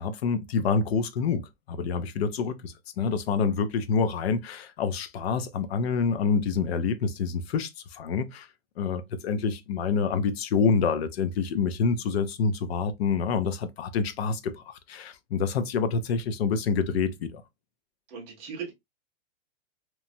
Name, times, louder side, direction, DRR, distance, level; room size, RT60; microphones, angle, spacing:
voice 1, 0.0-1.4 1.7-8.5 8.8-17.4, left 5 dB, 60° left, 0.5 m, -27 dB
voice 2, 18.1-18.7, right 6 dB, 15° right, 0.5 m, -37 dB
3.0 x 2.2 x 2.5 m
supercardioid pair, 175°, 36 cm